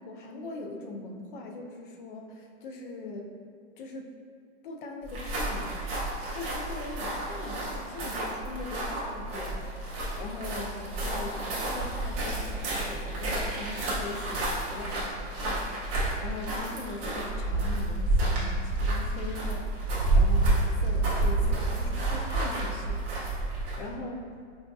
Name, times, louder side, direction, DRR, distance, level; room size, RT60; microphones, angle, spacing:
voice 1, 0.0-3.4 3.8-4.1 4.6-5.9 6.3-15.8 16.2-23.1 23.5-24.3, left 2 dB, 40° left, 2 dB, 0.4 m, -41 dB
sound 1, 5.0-23.9, right 2 dB, 15° right, 0.5 m, -29 dB
4.8 x 2.6 x 2.3 m, 2.3 s
hypercardioid pair, 145°, 38 cm